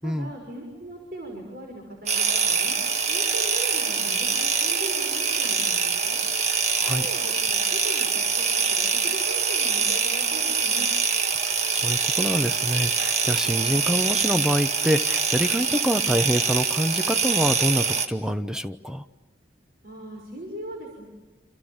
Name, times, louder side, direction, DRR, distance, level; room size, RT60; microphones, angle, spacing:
voice 1, 0.0-2.8 3.1-6.2 6.9-8.1 8.4-10.9 19.8-21.0, right 1 dB, 55° right, 0 dB, 5.9 m, -39 dB
sound 1, 2.1-18.1, right 6 dB, 40° right, 1.7 m, -24 dB
voice 2, 6.8-7.1 11.4-19.0, equal, 5° right, 9 dB, 0.9 m, -26 dB
28.5 x 28.0 x 7.3 m, 1.2 s
head